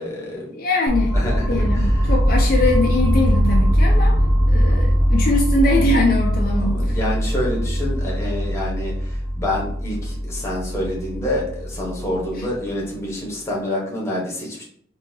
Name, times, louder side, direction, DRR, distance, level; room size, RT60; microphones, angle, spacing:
voice 1, 0.0-0.5 1.1-2.1 6.6-14.6, left 1 dB, 15° left, -3 dB, 1.0 m, -27 dB
voice 2, 0.5-1.2 1.5-4.2 4.5-7.0, left 2 dB, 50° left, -1 dB, 0.5 m, -22 dB
sound 1, 0.9-12.8, equal, 10° right, 0.4 m, -20 dB
4.0 x 2.7 x 2.7 m, 0.63 s
head